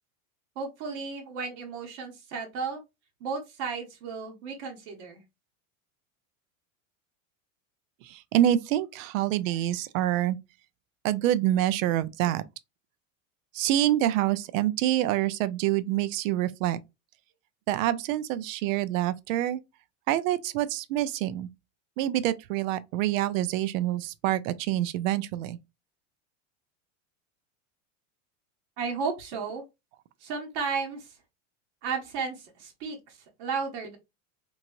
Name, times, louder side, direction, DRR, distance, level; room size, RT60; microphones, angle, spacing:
voice 1, 0.6-2.8 3.2-5.2 28.8-29.6 30.2-31.1 31.8-34.0, right 5 dB, 55° right, 1.0 m, -34 dB
voice 2, 8.0-10.4 11.0-12.4 13.5-16.8 17.7-19.6 20.1-21.5 22.0-25.6, right 13 dB, 70° right, 0.5 m, -26 dB
3.0 x 2.8 x 2.6 m
supercardioid pair, 155°, 40 cm